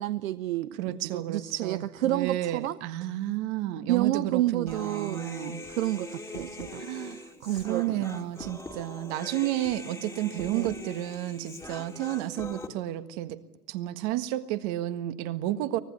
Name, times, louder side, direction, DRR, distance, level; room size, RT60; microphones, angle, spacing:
voice 1, 0.0-2.8 3.9-5.2 5.7-6.8 7.4-8.0 10.5-10.7, right 14 dB, 60° right, 14 dB, 0.8 m, -29 dB
voice 2, 0.8-5.6 6.7-7.2 7.6-13.4 13.7-15.8, right 14 dB, 40° right, 10 dB, 1.6 m, -31 dB
Human voice, 4.7-12.7, left 2 dB, 5° left, 2.2 m, -42 dB
24.0 x 19.5 x 9.5 m, 1.0 s
hypercardioid pair, 120°, 45 cm